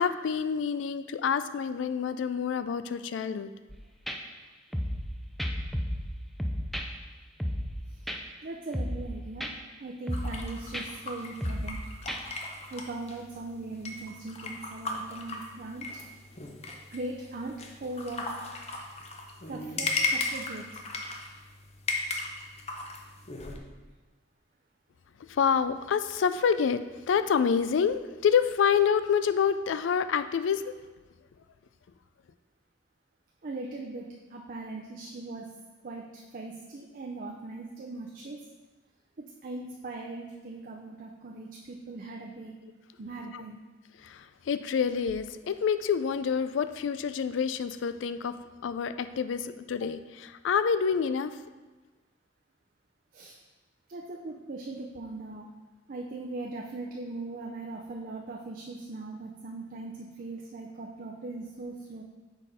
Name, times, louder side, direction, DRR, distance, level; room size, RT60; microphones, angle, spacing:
voice 1, 0.0-3.5 25.3-26.8 27.1-30.7 43.3-43.4 44.0-48.3 48.6-51.3, left 7 dB, 80° left, 12 dB, 0.3 m, -27 dB
sound 1, 3.7-3.8 4.1-4.2 4.7-5.1 5.4-6.1 6.4-6.9 7.4-7.8 8.1-8.2 8.7-9.1 9.4-9.5 10.1-10.4 10.7-10.9 11.4-11.8 12.1-12.2, equal, ahead, 0.4 m, -32 dB
voice 2, 8.4-9.5 9.8-11.8 12.7-15.9 16.9-18.3 19.5-20.7 33.4-35.5 35.8-38.4 39.2-42.5 43.0-43.6 53.1-53.4 53.9-55.5 55.9-62.0, right 2 dB, 50° right, 0 dB, 0.5 m, -40 dB
sound 2, 10.1-23.6, left 3 dB, 35° left, 0.7 m, -37 dB
6.5 x 4.1 x 4.9 m, 1.2 s
head